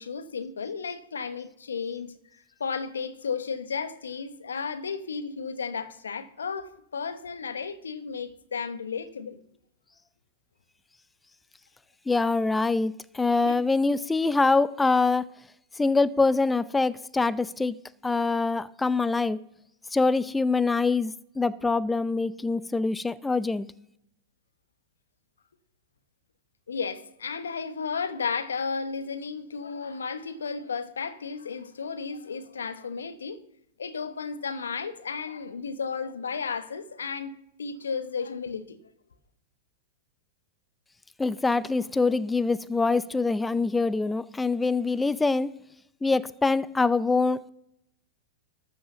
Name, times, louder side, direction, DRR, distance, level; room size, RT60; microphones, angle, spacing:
voice 1, 0.0-2.2 2.6-9.4 13.5-13.6 26.7-33.4 33.8-37.3 37.6-38.8, left 5 dB, 80° left, 1.0 m, -33 dB
voice 2, 12.1-15.3 15.7-17.8 18.0-19.4 19.9-23.7 41.2-45.5 46.0-47.5, left 3 dB, 10° left, 0.4 m, -24 dB
13.0 x 5.5 x 7.0 m
hypercardioid pair, 100°, 0 cm